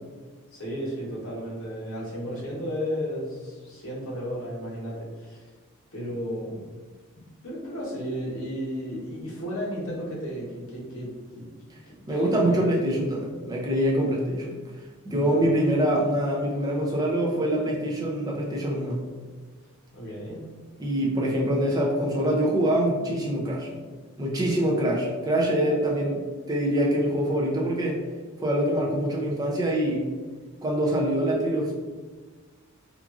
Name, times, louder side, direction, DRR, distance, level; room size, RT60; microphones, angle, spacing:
voice 1, 0.5-5.5 5.9-6.7 7.4-11.4 11.8-12.7 15.1-15.4 19.9-20.4, equal, 60° left, -6 dB, 0.9 m, -34 dB
voice 2, 12.1-14.6 15.0-19.0 20.8-23.7 24.2-28.0 28.4-30.0 30.6-31.7, right 1 dB, 15° right, -3 dB, 0.4 m, -25 dB
2.9 x 2.4 x 2.4 m, 1.4 s
head